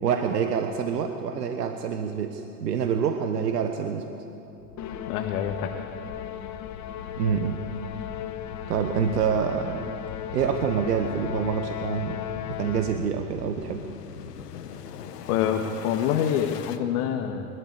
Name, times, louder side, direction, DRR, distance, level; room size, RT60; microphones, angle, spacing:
voice 1, 0.0-4.2 7.2-7.6 8.7-9.8 10.3-12.2 12.5-13.8, right 7 dB, 85° right, 6 dB, 1.2 m, -26 dB
sound 1, 4.6-16.8, left 8 dB, 80° left, 1.5 m, -42 dB
Musical instrument, 4.8-13.3, left 11 dB, 35° left, 1.3 m, -37 dB
voice 2, 5.1-5.7 15.3-17.5, left 9 dB, 65° left, 3 dB, 1.7 m, -26 dB
24.5 x 13.0 x 8.2 m, 3.0 s
hypercardioid pair, 90°, 47 cm